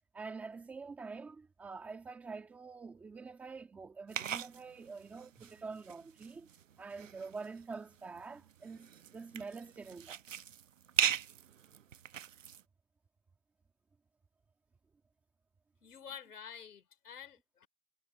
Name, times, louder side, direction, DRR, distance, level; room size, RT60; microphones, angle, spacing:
voice 1, 0.1-6.5 6.8-10.2, right 4 dB, 5° right, 1.6 m, -46 dB
sound 1, 4.1-12.6, right 9 dB, 55° right, 1.1 m, -39 dB
voice 2, 15.8-17.7, left 8 dB, 75° left, 4.7 m, -49 dB
hypercardioid pair, 175°, 46 cm